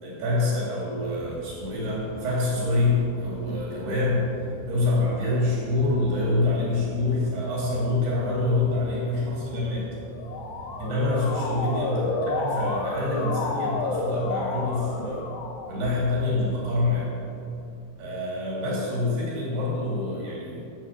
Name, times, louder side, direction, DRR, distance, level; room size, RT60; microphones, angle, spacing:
voice 1, 0.0-4.3 4.7-9.9 10.8-15.3 15.7-17.1 18.0-20.6, left 2 dB, 75° right, -5 dB, 5.4 m, -26 dB
sound 1, 1.0-17.9, right 1 dB, 90° right, 4.2 m, -45 dB
Tap, 1.8-2.2 3.5-3.8 4.8-5.4 6.5-7.2 8.2-8.6 9.3-9.8 11.0-11.1 11.3-11.8 13.1-13.5 14.9-15.4 17.0-17.3, left 2 dB, 60° left, 1.9 m, -46 dB
Motor vehicle (road) / Siren, 10.0-15.9, left 3 dB, 85° left, 1.3 m, -30 dB
16.5 x 7.2 x 6.1 m, 2.6 s
omnidirectional pair, 4.6 m